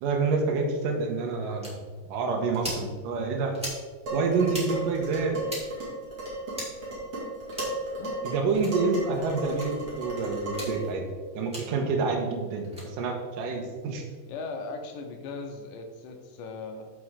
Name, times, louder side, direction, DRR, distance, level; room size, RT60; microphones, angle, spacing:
voice 1, 0.0-1.7 2.1-3.6 4.1-5.4 8.2-11.0 11.3-14.0, right 4 dB, 65° right, 1 dB, 2.4 m, -28 dB
sound 1, 1.6-1.7 2.5-2.8 3.5-3.8 4.5-4.7 5.5-5.6 6.5-6.7 7.5-7.8 8.5-8.7 9.5-9.7 10.5-10.7 11.5-11.6 12.6-12.9, equal, ahead, 1.5 m, -36 dB
Dishes pots and pans, 4.1-10.9, right 1 dB, 40° right, 2.9 m, -34 dB
voice 2, 8.0-8.3 14.3-16.9, left 3 dB, 75° left, 4 dB, 2.1 m, -38 dB
13.0 x 4.7 x 3.7 m, 1.4 s
omnidirectional pair, 4.7 m